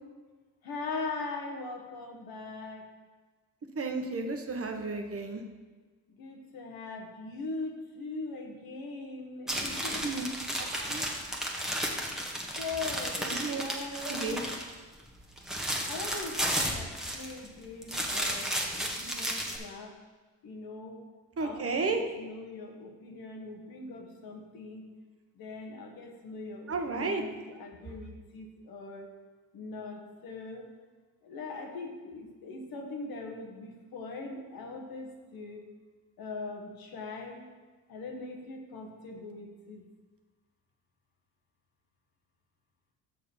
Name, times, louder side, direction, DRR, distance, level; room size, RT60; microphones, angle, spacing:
voice 1, 0.6-2.9 6.1-10.2 12.6-14.4 15.8-19.9 20.4-21.0 21.4-24.8 25.3-29.1 29.5-30.7 31.2-35.6 36.2-37.5 37.9-39.8, left 3 dB, 75° left, 3 dB, 1.5 m, -41 dB
voice 2, 3.7-5.4 10.0-10.2 10.6-11.0 13.2-13.6 14.0-14.4 21.4-22.0 26.7-27.2, right 3 dB, 40° right, 4 dB, 1.2 m, -33 dB
sound 1, 9.5-14.7 15.1-17.5 17.8-19.6, equal, ahead, 1.5 m, -33 dB
6.7 x 6.3 x 5.5 m, 1.3 s
cardioid pair, 75°, 37 cm